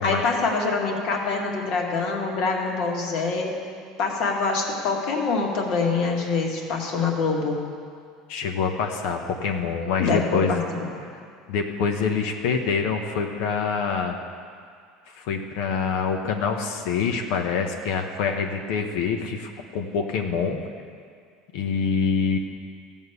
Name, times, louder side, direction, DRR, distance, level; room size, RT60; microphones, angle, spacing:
voice 1, 0.0-3.6 4.0-7.6 10.0-10.9, left 4 dB, 55° left, 0 dB, 2.1 m, -25 dB
voice 2, 8.3-10.5 11.5-14.2 15.1-20.6 21.5-22.4, left 5 dB, 75° left, 3 dB, 1.1 m, -25 dB
15.0 x 5.4 x 8.1 m, 2.2 s
cardioid pair, 140°, 0 cm